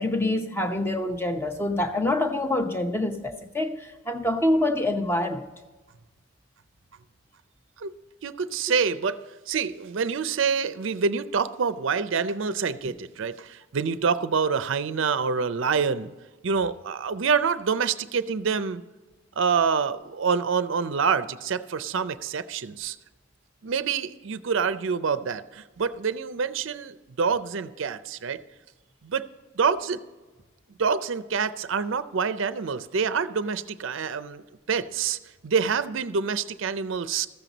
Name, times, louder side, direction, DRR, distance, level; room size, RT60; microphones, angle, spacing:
voice 1, 0.0-5.5, left 1 dB, 10° left, 0.7 m, -26 dB
voice 2, 8.2-9.2 9.5-16.1 16.4-18.8 19.4-23.0 23.6-28.4 29.0-29.2 29.6-30.0 30.8-35.2 35.4-37.3, right 5 dB, 65° right, 0.5 m, -26 dB
14.0 x 7.6 x 4.0 m
head